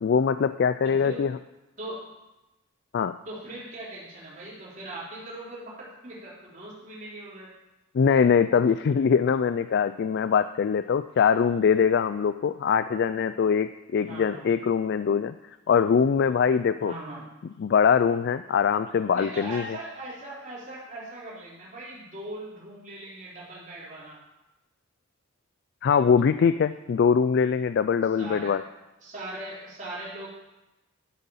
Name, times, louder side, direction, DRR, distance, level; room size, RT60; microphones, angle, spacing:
voice 1, 0.0-1.3 2.9-3.2 7.9-15.4 15.7-16.9 17.6-19.6 25.8-28.6, left 6 dB, 50° left, 12 dB, 0.3 m, -22 dB
voice 2, 0.8-1.3 1.8-2.0 3.2-7.5 13.9-14.6 16.8-17.2 19.1-24.2 28.1-28.6 29.0-30.3, right 1 dB, 40° right, -6 dB, 3.9 m, -40 dB
11.5 x 7.4 x 5.7 m, 1.0 s
head